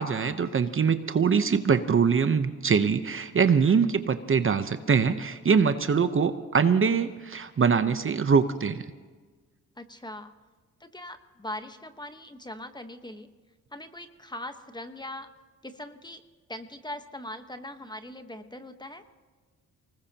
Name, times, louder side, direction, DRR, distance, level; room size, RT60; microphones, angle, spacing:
voice 1, 0.0-8.8, right 6 dB, 40° right, 10 dB, 0.9 m, -23 dB
voice 2, 9.8-10.3 10.8-13.3 13.7-15.3 15.6-16.2 16.5-19.0, left 1 dB, 15° left, 8 dB, 1.2 m, -40 dB
24.5 x 19.5 x 2.9 m, 1.4 s
cardioid pair, 75°, 32 cm